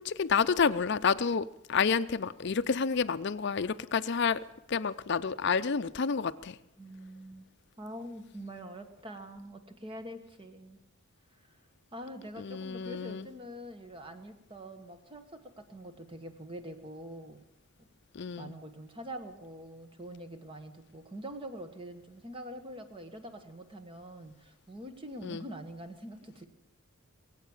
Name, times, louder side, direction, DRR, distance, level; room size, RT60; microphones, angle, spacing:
voice 1, 0.0-4.4 4.7-6.6 12.4-13.3 18.1-18.5 25.2-25.4, left 5 dB, 50° left, 12 dB, 0.5 m, -29 dB
voice 2, 6.8-7.5 7.8-10.8 11.4-11.6 11.9-17.4 18.4-26.5, equal, 25° right, 7 dB, 1.2 m, -45 dB
21.5 x 8.3 x 7.1 m, 0.87 s
head